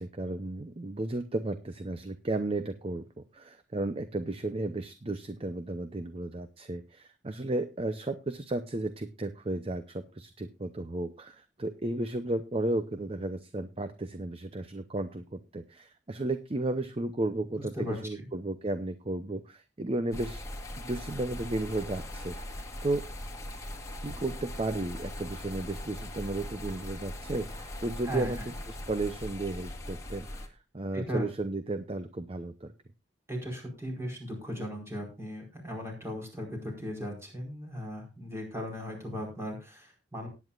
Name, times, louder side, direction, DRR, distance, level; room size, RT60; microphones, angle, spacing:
voice 1, 0.0-20.4 20.8-23.0 24.0-28.4 28.7-30.3 30.7-32.7, right 2 dB, 30° right, 10 dB, 0.7 m, -34 dB
voice 2, 17.5-18.2 28.0-28.4 30.9-31.2 33.3-40.3, equal, 15° right, 0 dB, 4.8 m, -37 dB
sound 1, 20.1-30.5, left 1 dB, 20° left, 1.8 m, -40 dB
18.5 x 9.4 x 2.4 m, 0.26 s
head